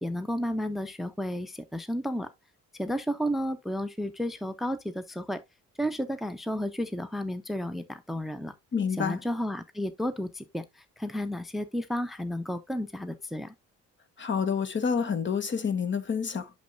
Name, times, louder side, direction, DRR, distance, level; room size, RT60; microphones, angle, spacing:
voice 1, 0.0-2.3 2.7-5.4 5.8-8.5 9.0-13.5, equal, ahead, 0.6 m, -32 dB
voice 2, 8.7-9.2 14.2-16.5, left 6 dB, 40° left, 1.1 m, -28 dB
8.3 x 6.4 x 2.5 m
cardioid pair, 90°, 30 cm